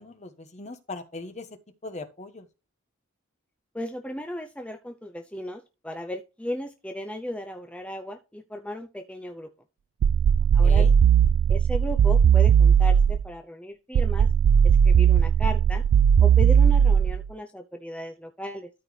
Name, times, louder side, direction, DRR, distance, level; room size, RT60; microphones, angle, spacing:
voice 1, 0.0-1.5 1.8-2.4 10.6-10.9, left 3 dB, 35° left, 1.1 m, -39 dB
voice 2, 3.7-9.5 10.5-10.9 11.5-14.3 14.6-15.8 16.2-18.7, left 1 dB, 5° left, 0.6 m, -35 dB
sound 1, 10.0-13.3 13.9-17.3, right 8 dB, 90° right, 0.3 m, -18 dB
13.0 x 4.5 x 3.3 m
head